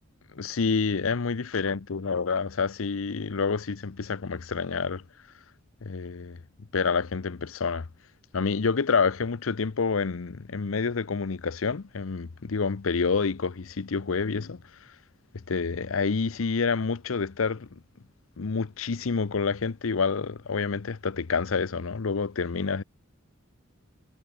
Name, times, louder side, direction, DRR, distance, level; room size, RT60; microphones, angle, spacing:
voice 1, 0.3-5.0 5.8-6.4 6.7-7.9 8.3-14.6 15.5-17.7 18.4-22.8, left 5 dB, 80° left, 0.7 m, -28 dB
head